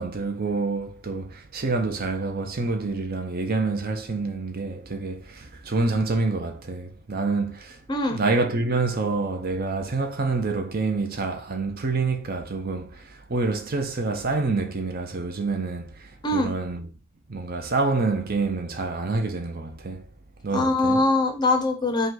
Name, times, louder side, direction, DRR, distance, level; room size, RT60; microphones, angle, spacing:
voice 1, 0.0-16.9 17.3-20.1 20.4-21.1, right 3 dB, 40° right, 0.6 m, -27 dB
voice 2, 7.9-8.2 16.2-16.5 20.5-22.1, left 2 dB, 20° left, 0.6 m, -22 dB
5.3 x 2.3 x 3.8 m
head